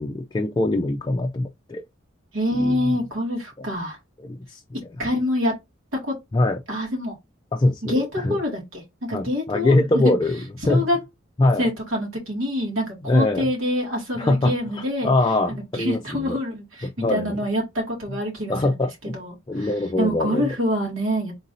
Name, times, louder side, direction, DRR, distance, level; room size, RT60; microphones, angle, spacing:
voice 1, 0.0-1.8 2.5-2.9 3.6-3.7 4.2-4.6 6.3-6.6 7.5-8.4 9.1-10.4 10.7-10.9 11.4-11.7 13.0-13.5 14.2-16.4 16.8-17.4 18.5-19.2 19.5-20.5, left 2 dB, 20° left, 0.4 m, -23 dB
voice 2, 2.3-4.0 5.0-5.5 5.9-6.1 6.7-7.1 7.8-10.1 10.7-11.0 11.6-15.1 15.7-18.8 19.1-19.7 20.0-21.3, left 1 dB, 85° right, 2.2 m, -26 dB
3.8 x 2.6 x 4.1 m
head